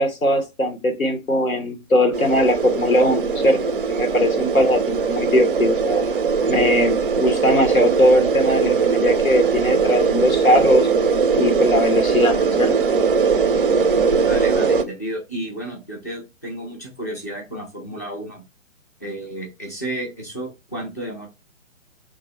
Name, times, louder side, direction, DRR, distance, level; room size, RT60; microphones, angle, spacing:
voice 1, 0.0-6.0 6.5-10.9 11.4-12.7, equal, 85° left, 1.1 m, -20 dB
sound 1, 2.1-14.8, right 5 dB, 45° right, 0.5 m, -20 dB
voice 2, 14.2-18.4 19.0-21.3, right 1 dB, 15° left, 0.4 m, -32 dB
3.0 x 2.7 x 4.2 m
figure-of-eight pair, 130°, 40 cm